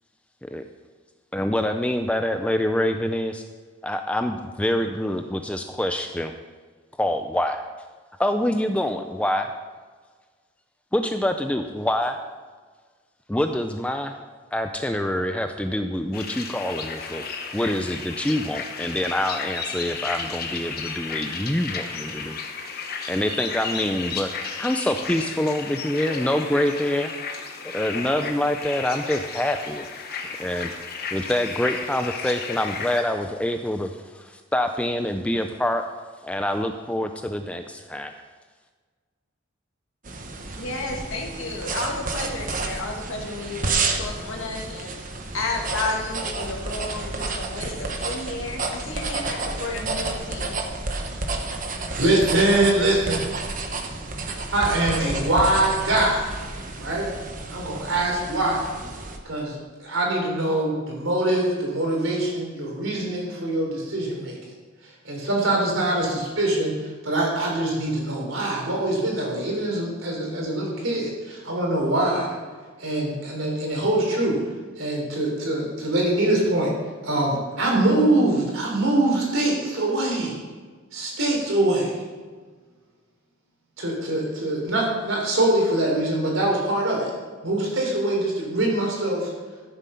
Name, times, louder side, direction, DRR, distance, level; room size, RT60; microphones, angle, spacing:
voice 1, 1.3-3.4 3.8-6.3 7.0-7.6 8.2-9.5 10.9-12.2 13.3-14.2 14.5-17.2 17.5-22.4 23.1-24.3 24.6-27.1 27.6-29.9 30.1-30.7 31.1-35.8 36.2-38.1, left 1 dB, 5° left, 6 dB, 0.4 m, -26 dB
sound 1, 16.1-33.0, left 5 dB, 45° left, 1.1 m, -33 dB
sound 2, 40.0-59.2, right 3 dB, 40° right, 1.0 m, -31 dB
voice 2, 40.6-44.9 45.3-50.6, left 2 dB, 70° left, 0 dB, 2.2 m, -32 dB
voice 3, 52.0-53.2 54.5-56.3 56.8-57.1 57.5-58.6 59.2-64.5 65.0-66.8 67.0-72.3 72.8-74.4 74.8-76.7 77.0-80.4 80.9-81.9 83.8-87.1 87.4-89.3, right 1 dB, 75° right, -2 dB, 3.7 m, -23 dB
13.0 x 7.3 x 5.7 m, 1.5 s
head